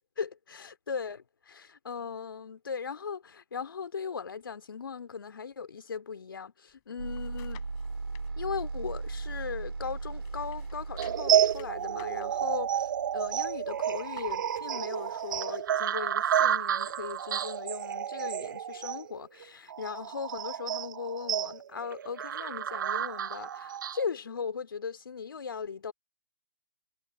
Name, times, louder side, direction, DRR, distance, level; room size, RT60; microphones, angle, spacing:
voice 1, 0.2-7.7 8.4-25.9, left 6 dB, 70° left, 2.8 m, -38 dB
sound 1, 6.7-8.3 8.8-9.9 10.1-15.7 16.2-16.3, left 39 dB, 35° left, 3.7 m, -58 dB
sound 2, 7.0-15.1, right 3 dB, 85° right, 2.7 m, -39 dB
sound 3, 11.0-24.0, right 9 dB, 60° right, 1.0 m, -30 dB
figure-of-eight pair, 120°, 12 cm